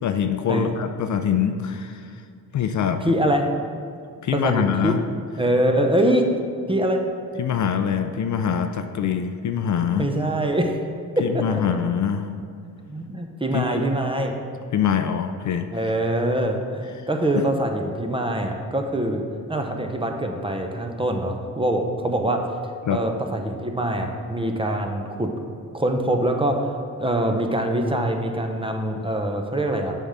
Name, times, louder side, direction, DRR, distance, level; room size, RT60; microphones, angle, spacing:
voice 1, 0.0-2.1 2.5-3.1 4.2-5.0 7.4-10.1 11.2-12.3 13.5-13.8 14.7-15.9 17.4-17.5 22.8-23.0, left 8 dB, 50° left, 8 dB, 0.5 m, -24 dB
voice 2, 3.1-3.5 4.3-5.0 5.4-6.2 6.7-7.0 10.0-10.8 11.2-11.6 12.9-14.3 15.7-19.2 19.5-22.4 22.9-25.3 25.7-29.9, right 1 dB, 15° right, 3 dB, 0.6 m, -24 dB
7.0 x 3.7 x 5.5 m, 2.3 s
cardioid pair, 75°, 37 cm